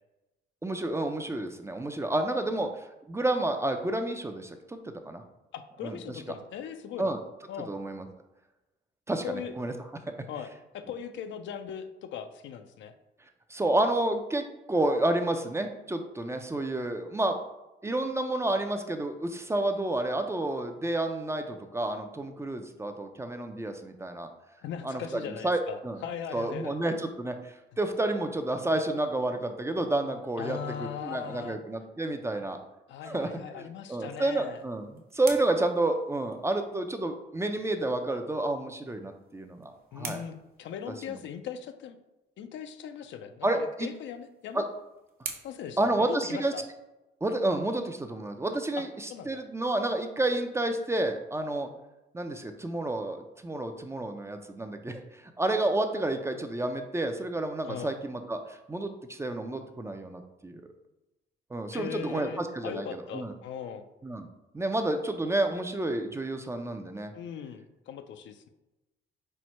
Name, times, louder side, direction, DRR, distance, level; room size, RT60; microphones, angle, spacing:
voice 1, 0.6-5.2 5.8-6.0 7.0-7.2 7.7-8.1 9.1-9.7 13.5-17.4 17.8-24.3 24.8-26.0 26.3-32.6 33.0-40.2 41.1-41.2 43.4-43.9 44.5-44.6 45.8-46.5 47.2-51.7 52.1-60.6 61.5-63.3 64.0-64.3 64.5-67.1, right 2 dB, 15° right, 6 dB, 0.4 m, -30 dB
voice 2, 5.5-7.2 7.5-7.7 9.2-9.5 10.3-12.9 24.6-26.8 30.4-31.6 32.9-34.6 39.9-42.0 42.4-44.6 45.4-46.6 48.8-48.9 49.1-49.4 57.6-57.9 61.7-63.8 67.1-68.5, left 8 dB, 70° left, 8 dB, 0.4 m, -39 dB
sound 1, 34.3-36.8 38.9-41.4 43.6-46.8, right 5 dB, 50° right, 0.8 m, -47 dB
4.4 x 2.1 x 4.3 m, 1.0 s
cardioid pair, 90°, 20 cm